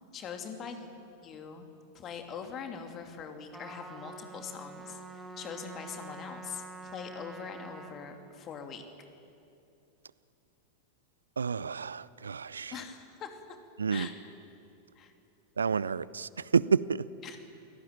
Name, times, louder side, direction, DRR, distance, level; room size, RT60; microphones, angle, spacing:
voice 1, 0.1-0.9 1.2-1.7 1.9-8.8 12.7-13.6 13.9-14.1 14.9-15.1 17.2-17.4, left 6 dB, 30° left, 5 dB, 2.7 m, -42 dB
Trumpet, 3.5-8.0, right 2 dB, 10° right, 3.1 m, -46 dB
voice 2, 11.4-12.8 13.8-14.1 15.6-17.1, right 6 dB, 70° right, 20 dB, 0.5 m, -29 dB
28.5 x 17.5 x 9.0 m, 2.7 s
figure-of-eight pair, 90°, 0 cm